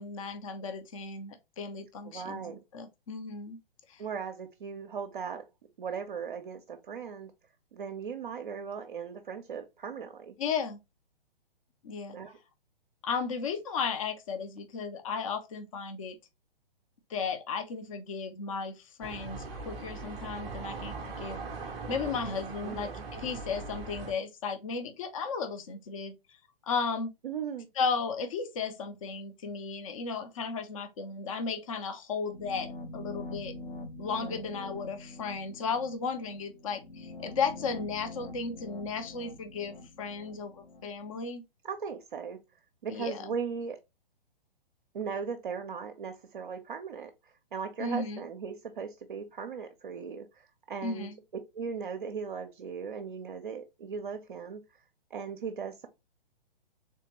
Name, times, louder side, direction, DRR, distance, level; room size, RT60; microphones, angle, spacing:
voice 1, 0.0-3.6 3.9-4.0 10.4-10.8 11.8-12.2 13.0-16.2 17.1-21.4 21.9-26.1 26.6-27.1 27.8-33.5 34.0-41.4 42.9-43.3 47.8-48.2 50.8-51.2, left 5 dB, 35° left, 0.5 m, -35 dB
voice 2, 2.0-2.6 4.0-5.5 5.8-7.3 7.7-10.4 12.1-12.4 22.6-23.0 27.2-27.7 34.2-34.8 41.6-42.4 42.8-43.8 44.9-51.1 51.5-54.6 55.1-55.9, right 6 dB, 60° right, 0.5 m, -38 dB
sound 1, 19.0-24.1, right 4 dB, 15° right, 0.5 m, -40 dB
sound 2, 32.3-41.3, left 2 dB, 60° left, 1.0 m, -45 dB
3.6 x 2.8 x 2.9 m
figure-of-eight pair, 120°, 30 cm